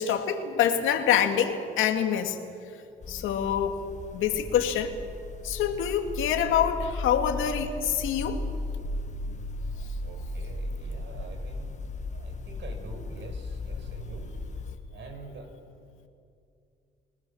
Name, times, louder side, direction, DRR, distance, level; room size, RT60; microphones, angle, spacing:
voice 1, 0.0-2.4 3.1-3.8 4.1-4.9 5.4-8.4 9.3-9.5, left 9 dB, 90° left, 6 dB, 2.2 m, -26 dB
sound 1, 3.0-14.8, left 2 dB, 35° left, 1.8 m, -36 dB
voice 2, 10.0-11.7 12.1-14.3 14.9-15.5, right 3 dB, 65° right, 5 dB, 5.2 m, -46 dB
30.0 x 19.0 x 7.2 m, 2.5 s
cardioid pair, 90°, 20 cm